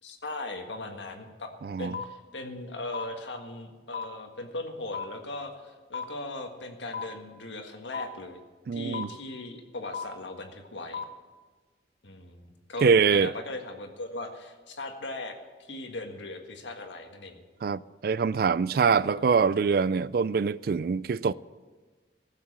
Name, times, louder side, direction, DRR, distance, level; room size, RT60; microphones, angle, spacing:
voice 1, 0.0-1.5 1.8-8.4 8.7-11.0 12.0-17.4 18.8-19.3, left 2 dB, 80° left, 1.7 m, -39 dB
voice 2, 1.6-2.0 8.7-9.1 12.8-13.3 17.6-21.3, right 5 dB, 55° right, 0.3 m, -24 dB
sound 1, 1.9-2.0 2.9-3.0 3.9-4.0 4.9-5.0 5.9-6.0 6.9-7.0 7.9-8.0 8.9-9.0 9.9-10.0 10.9-11.0, left 6 dB, 60° left, 1.0 m, -33 dB
15.5 x 7.5 x 8.8 m
head